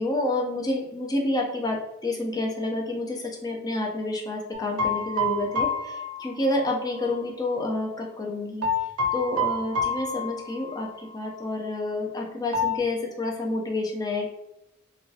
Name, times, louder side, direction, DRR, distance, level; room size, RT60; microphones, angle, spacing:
voice 1, 0.0-8.7 9.1-14.3, left 2 dB, 15° left, 0 dB, 0.4 m, -29 dB
sound 1, 4.5-7.1 8.6-10.9 11.1-11.3 12.5-12.8, left 2 dB, 70° right, 0.5 m, -28 dB
3.0 x 2.2 x 2.7 m, 0.85 s
head